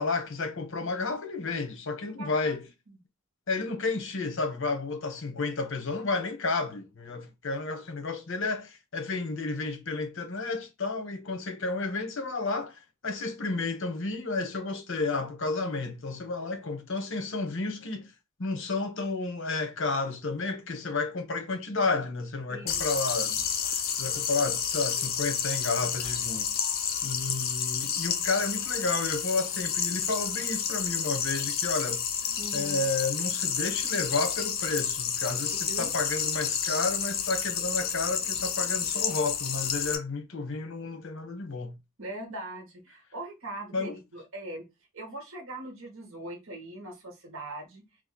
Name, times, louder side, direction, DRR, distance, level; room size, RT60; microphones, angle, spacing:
voice 1, 0.0-2.6 3.5-18.1 18.4-23.5 24.0-26.5 27.0-32.0 32.5-41.8 43.7-44.0, left 3 dB, 65° left, 1.0 m, -31 dB
voice 2, 2.2-2.6 22.5-22.8 32.4-32.9 35.7-35.9 42.0-44.7 44.9-47.8, right 2 dB, 65° right, 1.1 m, -41 dB
sound 1, 22.7-40.0, left 8 dB, 45° left, 0.6 m, -30 dB
3.1 x 2.4 x 3.9 m
head